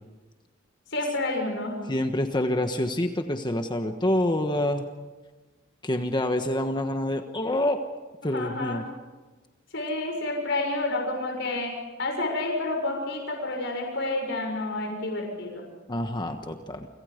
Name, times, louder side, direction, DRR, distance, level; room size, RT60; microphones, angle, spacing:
voice 1, 0.9-1.8 8.2-8.9 9.7-11.7 12.0-15.6, left 2 dB, 65° left, 2 dB, 6.6 m, -29 dB
voice 2, 1.9-4.8 5.8-7.8 8.2-8.8 15.9-16.9, left 1 dB, 25° left, 6 dB, 1.3 m, -27 dB
29.0 x 26.0 x 5.2 m, 1.2 s
head